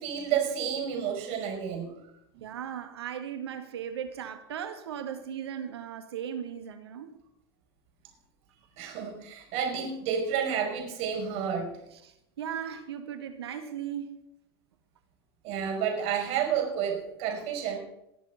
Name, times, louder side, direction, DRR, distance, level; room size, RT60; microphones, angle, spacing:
voice 1, 0.0-1.9 8.8-11.7 15.4-17.8, right 7 dB, 50° right, 5.3 m, -30 dB
voice 2, 2.4-7.2 11.9-14.2, right 9 dB, 70° right, 1.9 m, -37 dB
20.5 x 7.4 x 5.7 m
hypercardioid pair, 95°, 14 cm